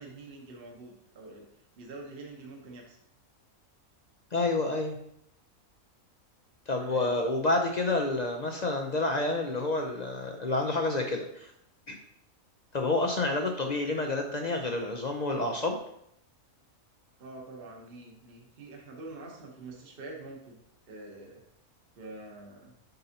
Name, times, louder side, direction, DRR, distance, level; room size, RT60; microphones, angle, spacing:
voice 1, 0.0-1.5 1.8-3.0 6.8-7.1 17.2-20.6 20.9-21.4 22.0-22.7, right 2 dB, 45° right, 0 dB, 1.1 m, -46 dB
voice 2, 4.3-5.0 6.7-11.5 11.9-12.0 12.7-15.8, left 2 dB, 55° left, 3 dB, 0.5 m, -29 dB
7.8 x 5.4 x 2.8 m, 0.73 s
omnidirectional pair, 1.5 m